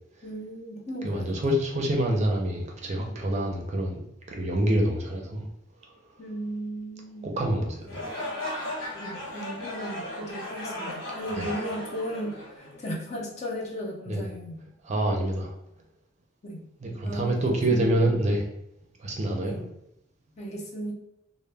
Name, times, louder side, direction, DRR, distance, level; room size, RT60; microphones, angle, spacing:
voice 1, 0.2-1.6 6.2-7.3 8.9-14.6 16.4-16.6 17.0-18.1 19.4-19.7 20.4-20.9, equal, 35° left, -1 dB, 0.5 m, -36 dB
voice 2, 1.0-4.0 4.3-5.4 7.4-8.0 11.3-11.5 14.1-14.2 14.8-15.5 16.8-18.4 19.0-19.6, right 1 dB, 35° right, 0 dB, 0.5 m, -26 dB
sound 1, 7.8-13.0, left 1 dB, 70° left, 1.2 m, -36 dB
2.2 x 2.0 x 3.2 m, 0.81 s
head